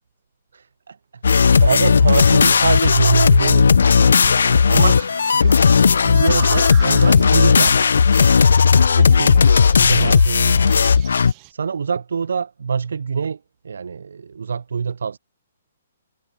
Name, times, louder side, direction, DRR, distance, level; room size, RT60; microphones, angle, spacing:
voice 1, 0.9-7.9 8.9-10.8 11.5-15.2, right 6 dB, 75° right, 1.4 m, -25 dB
sound 1, 1.2-11.3, left 5 dB, 85° left, 0.4 m, -14 dB
sound 2, 5.0-11.5, right 31 dB, 20° right, 1.3 m, -41 dB
hypercardioid pair, 180°, 0 cm